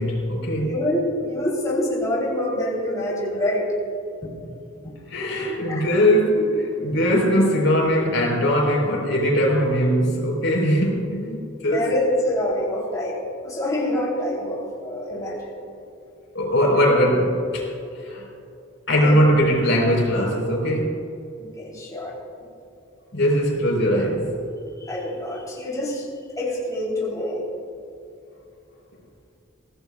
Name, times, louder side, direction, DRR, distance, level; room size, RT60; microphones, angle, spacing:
voice 1, 0.0-0.8 5.1-11.9 16.3-17.7 18.0-18.3 18.9-21.1 23.1-24.4, equal, 75° left, -1 dB, 4.2 m, -20 dB
voice 2, 0.6-3.7 4.2-4.3 5.7-5.8 11.7-15.5 19.0-19.3 21.5-22.1 24.8-26.1 26.4-27.4, left 1 dB, 20° left, -5 dB, 3.4 m, -26 dB
23.0 x 17.0 x 2.4 m, 2.6 s
head